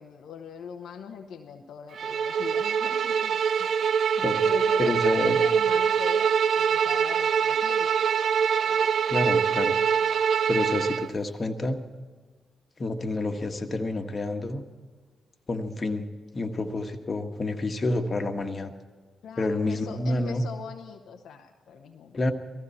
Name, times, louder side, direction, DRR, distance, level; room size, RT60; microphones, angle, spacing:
voice 1, 0.0-3.7 4.4-7.9 8.6-8.8 19.2-22.2, left 6 dB, 75° left, 3 dB, 0.9 m, -41 dB
Bowed string instrument, 2.0-11.1, right 7 dB, 65° right, 0.4 m, -24 dB
voice 2, 4.8-5.4 9.1-9.8 10.5-11.8 12.8-14.6 15.5-16.1 16.3-18.7 19.4-20.4 22.1-22.3, left 2 dB, 45° left, 6 dB, 1.5 m, -28 dB
18.0 x 15.0 x 4.3 m, 1.5 s
hypercardioid pair, 40°, 0 cm